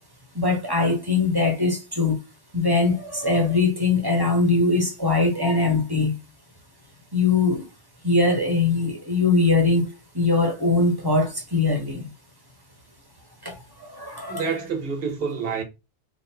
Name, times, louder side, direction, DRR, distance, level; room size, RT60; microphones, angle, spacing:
voice 1, 0.3-2.2 2.5-6.1 7.1-7.6 8.0-9.8 10.1-12.1 13.4-14.5, left 3 dB, 20° right, 1.0 m, -21 dB
voice 2, 14.3-15.6, right 5 dB, 60° right, 1.1 m, -28 dB
3.4 x 2.6 x 4.3 m
omnidirectional pair, 1.1 m